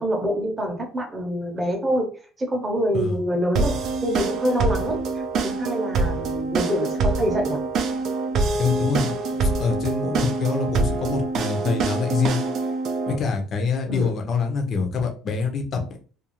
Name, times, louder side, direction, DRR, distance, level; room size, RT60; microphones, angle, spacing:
voice 1, 0.0-2.1 2.4-7.6 13.9-14.1, equal, 15° right, 2 dB, 0.7 m, -26 dB
sound 1, 3.6-13.2, right 3 dB, 50° right, 0.4 m, -25 dB
voice 2, 8.6-9.2 9.4-12.4 13.1-15.8, left 5 dB, 35° left, 4 dB, 0.6 m, -25 dB
2.5 x 2.3 x 2.9 m, 0.37 s
cardioid pair, 145°, 0 cm